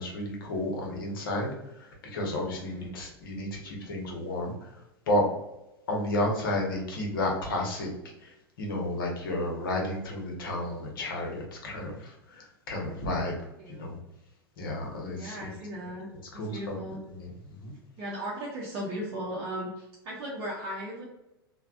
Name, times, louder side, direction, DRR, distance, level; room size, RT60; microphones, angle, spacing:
voice 1, 0.0-4.8 5.1-5.3 5.9-7.9 8.2-13.3 13.7-14.0 14.6-15.5 16.3-16.8 17.1-17.7, left 1 dB, 60° left, 0 dB, 0.8 m, -32 dB
voice 2, 15.1-16.1 16.3-17.0 18.0-21.0, equal, 40° right, -4 dB, 0.6 m, -37 dB
3.3 x 2.1 x 2.4 m, 0.91 s
figure-of-eight pair, 95°, 13 cm